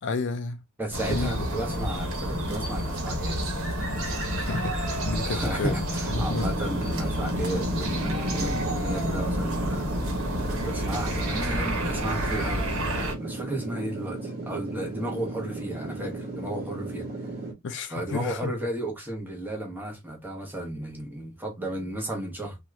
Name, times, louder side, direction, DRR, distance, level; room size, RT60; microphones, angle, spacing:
voice 1, 0.0-0.6 1.0-1.5 4.3-6.5 17.6-18.5, left 3 dB, 60° left, 0.5 m, -32 dB
voice 2, 0.8-3.4 5.2-9.9 10.5-12.7 13.2-17.1 17.9-22.6, right 1 dB, 10° right, 1.0 m, -34 dB
sound 1, 0.9-13.1, equal, 70° right, 1.1 m, -29 dB
sound 2, 6.0-17.5, right 2 dB, 45° right, 1.2 m, -36 dB
2.9 x 2.4 x 3.2 m
head